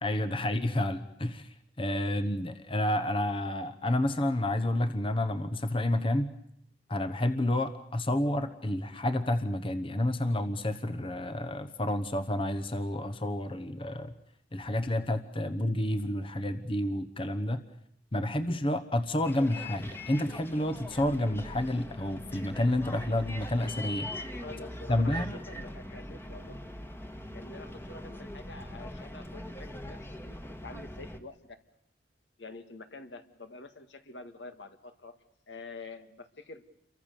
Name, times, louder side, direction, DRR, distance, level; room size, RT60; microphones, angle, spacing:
voice 1, 0.0-6.3 6.9-14.1 14.5-17.6 18.1-24.1 24.9-25.3, left 1 dB, 30° left, 10 dB, 1.1 m, -30 dB
Bus, 19.2-31.2, left 1 dB, 15° left, 1.5 m, -42 dB
voice 2, 24.4-26.6 27.3-30.4 30.6-31.6 32.4-35.2 35.5-36.6, left 3 dB, 75° left, 8 dB, 2.0 m, -47 dB
29.0 x 23.5 x 6.9 m, 0.74 s
head